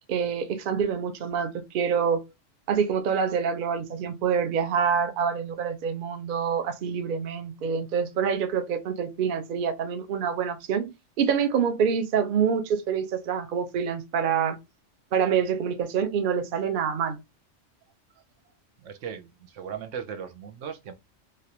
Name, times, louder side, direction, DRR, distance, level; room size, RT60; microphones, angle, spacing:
voice 1, 0.1-2.2 2.7-14.6 15.1-17.2, right 7 dB, 55° right, 0.7 m, -26 dB
voice 2, 18.8-20.9, right 7 dB, 80° right, 1.0 m, -37 dB
3.3 x 2.4 x 2.7 m
omnidirectional pair, 1.3 m